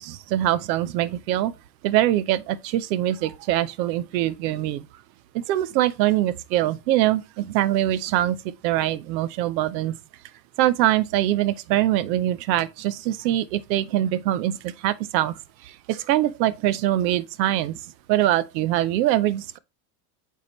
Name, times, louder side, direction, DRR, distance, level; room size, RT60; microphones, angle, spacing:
voice 1, 0.0-1.5 1.8-4.8 5.3-8.4 8.6-9.9 10.6-15.4 15.6-17.8 18.1-19.6, right 13 dB, 85° right, 0.7 m, -23 dB
8.4 x 3.7 x 3.0 m
supercardioid pair, 95°, 50 cm